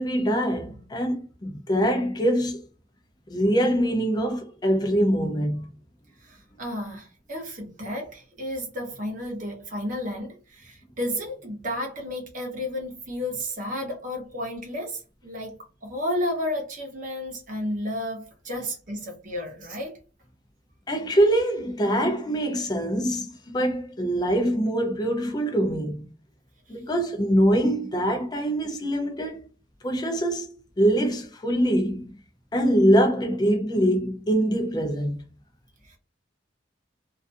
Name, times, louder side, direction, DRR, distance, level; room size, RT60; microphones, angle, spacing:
voice 1, 0.0-2.6 3.3-5.7 20.9-26.0 26.7-29.5 29.8-30.5 30.8-32.1 32.5-35.2, equal, 20° left, 0.4 m, -23 dB
voice 2, 6.2-15.6 15.8-20.0 35.9-36.0, left 1 dB, 45° right, 0.8 m, -32 dB
2.4 x 2.3 x 2.5 m
head